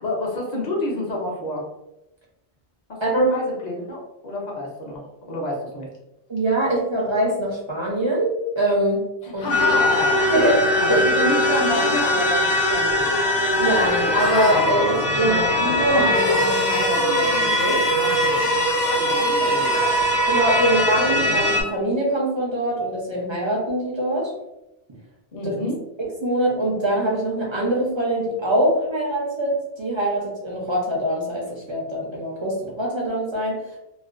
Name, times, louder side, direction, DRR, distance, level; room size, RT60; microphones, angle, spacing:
voice 1, 0.0-1.6 2.9-5.9 9.2-10.3 10.8-13.2 19.1-19.9 25.3-25.8, left 1 dB, 50° left, -2 dB, 0.6 m, -28 dB
voice 2, 6.3-9.0 9.3-9.4 10.3-11.0 13.6-17.8 19.4-19.6 20.3-24.3 26.0-33.6, right 1 dB, 40° right, -3 dB, 0.4 m, -23 dB
sound 1, 9.5-21.6, left 1 dB, 75° left, 0.9 m, -21 dB
2.4 x 2.1 x 2.4 m, 0.91 s
omnidirectional pair, 1.1 m